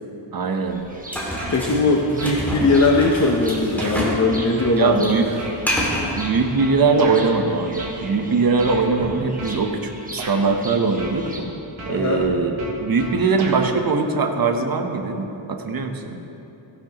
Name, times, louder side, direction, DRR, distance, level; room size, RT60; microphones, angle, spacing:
voice 1, 0.3-0.8 4.8-5.3 6.2-11.3 11.9-12.5 12.8-16.2, right 4 dB, 45° right, 4 dB, 0.9 m, -21 dB
sound 1, 0.7-11.4, right 1 dB, 15° right, 1.2 m, -40 dB
sound 2, 1.1-4.3 4.5-6.1, equal, 5° left, 2.2 m, -27 dB
sound 3, 1.4-1.9 2.2-3.2 3.8-4.0 4.6-7.2 7.8-8.2 8.6-9.6 10.2-10.4 11.0-11.5 11.8-13.6, right 2 dB, 75° right, 1.7 m, -34 dB
voice 2, 1.5-5.2 11.9-12.2, left 3 dB, 35° left, 0 dB, 0.7 m, -19 dB
16.0 x 11.0 x 3.0 m, 2.9 s
wide cardioid pair, 155°, 48 cm